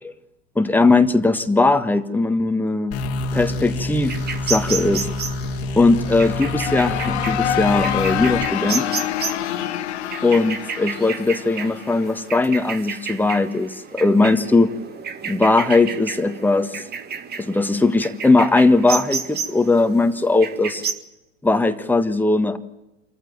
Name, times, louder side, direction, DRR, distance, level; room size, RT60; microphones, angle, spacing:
voice 1, 0.5-3.0 3.3-4.2 4.5-5.1 5.7-8.9 10.2-14.7 15.2-16.8 17.4-20.8 21.4-22.6, left 3 dB, 5° left, 7 dB, 1.6 m, -19 dB
sound 1, 2.9-8.5, left 2 dB, 40° left, 1.9 m, -27 dB
sound 2, 4.0-20.9, right 6 dB, 25° right, 1.8 m, -32 dB
sound 3, 5.8-12.6, left 11 dB, 60° left, 1.4 m, -27 dB
27.0 x 14.5 x 9.2 m, 0.95 s
figure-of-eight pair, 85°, 37 cm